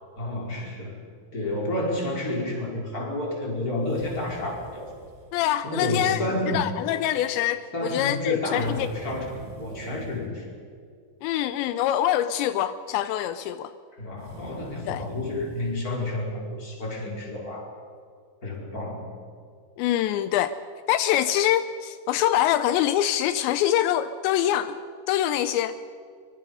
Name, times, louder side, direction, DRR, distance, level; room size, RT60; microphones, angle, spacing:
voice 1, 0.2-1.0 1.3-4.9 5.6-6.7 7.7-10.5 14.0-17.8 18.4-19.2, left 1 dB, 20° left, -1 dB, 4.8 m, -30 dB
sound 1, 3.9-5.4 8.5-10.3 14.2-15.8, right 4 dB, 70° right, 3.9 m, -45 dB
voice 2, 5.3-6.2 6.5-8.9 11.2-13.7 14.8-15.0 19.8-20.6 20.9-24.8 25.1-25.8, left 12 dB, 85° left, 12 dB, 2.9 m, -24 dB
24.5 x 24.0 x 5.4 m, 2.2 s
omnidirectional pair, 5.1 m